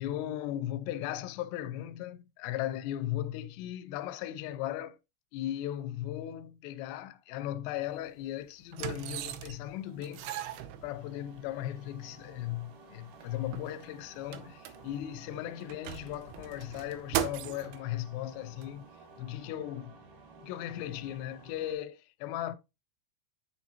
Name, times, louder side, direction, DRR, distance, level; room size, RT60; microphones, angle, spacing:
voice 1, 0.0-5.0 5.3-10.3 10.8-18.9 19.2-20.0 20.4-22.6, left 12 dB, 80° left, 2.6 m, -37 dB
sound 1, 7.9-8.0 8.7-9.7 10.0-11.4 12.1-12.2 12.5-12.6 13.0-15.2 15.6-17.8 18.6-18.7, right 11 dB, 85° right, 3.0 m, -38 dB
sound 2, 9.2-21.7, right 3 dB, 70° right, 3.0 m, -55 dB
7.0 x 6.8 x 2.9 m
omnidirectional pair, 5.1 m